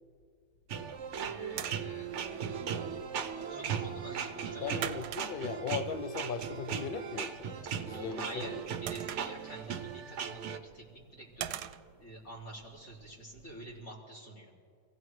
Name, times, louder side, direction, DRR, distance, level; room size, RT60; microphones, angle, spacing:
sound 1, 0.7-10.6, right 7 dB, 55° right, 0.9 m, -38 dB
sound 2, 0.8-13.8, right 10 dB, 75° right, 1.1 m, -47 dB
voice 1, 1.2-2.3 3.5-4.9 7.9-11.6 12.0-14.5, right 1 dB, 55° left, -4 dB, 4.0 m, -47 dB
voice 2, 4.6-7.5 7.9-8.6, left 6 dB, 75° left, 11 dB, 0.5 m, -38 dB
28.0 x 16.0 x 3.2 m, 2.2 s
omnidirectional pair, 1.8 m